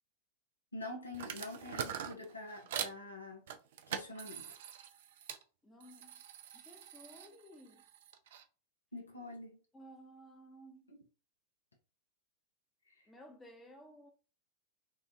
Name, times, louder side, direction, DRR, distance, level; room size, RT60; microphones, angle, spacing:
voice 1, 0.7-3.5 3.9-4.6 8.9-9.6 10.9-11.0 12.9-13.0, left 2 dB, 80° left, 0.9 m, -46 dB
sound 1, 1.1-3.0 3.5-5.4 5.8-8.4, right 8 dB, 55° right, 0.4 m, -44 dB
voice 2, 5.6-6.2 6.5-7.8 9.7-10.8 13.1-14.1, equal, 10° left, 0.9 m, -56 dB
4.3 x 2.4 x 2.4 m
figure-of-eight pair, 90°, 0 cm